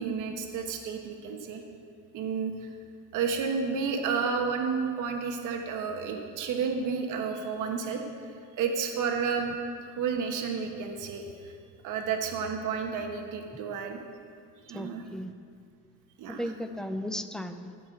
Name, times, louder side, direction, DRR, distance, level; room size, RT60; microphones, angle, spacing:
voice 1, 0.0-1.6 2.1-2.5 3.1-8.0 8.5-11.5 11.8-14.0 14.7-15.0 16.2-16.4, right 5 dB, 70° right, 3 dB, 1.2 m, -31 dB
voice 2, 14.7-15.3 16.3-17.7, equal, ahead, 8 dB, 0.3 m, -35 dB
14.5 x 5.7 x 7.8 m, 2.3 s
cardioid pair, 165°, 32 cm